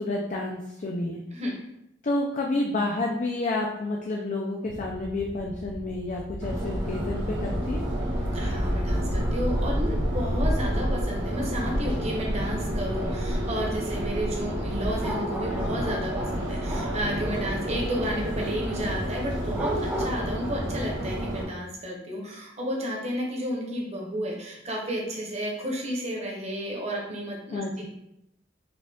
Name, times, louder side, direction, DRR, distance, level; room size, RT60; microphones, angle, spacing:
voice 1, 0.0-1.2 2.0-7.8 27.5-27.9, left 2 dB, 40° left, -1 dB, 0.4 m, -29 dB
sound 1, 4.7-10.6, equal, 60° right, 0.9 m, -35 dB
Subway metro underground, 6.4-21.4, equal, 75° right, 1.4 m, -29 dB
voice 2, 8.3-19.7 20.0-27.6, equal, 35° right, -1 dB, 1.0 m, -32 dB
sound 2, 15.0-17.0 19.5-20.2, right 1 dB, 5° right, 0.5 m, -34 dB
4.8 x 2.4 x 3.5 m, 0.83 s
head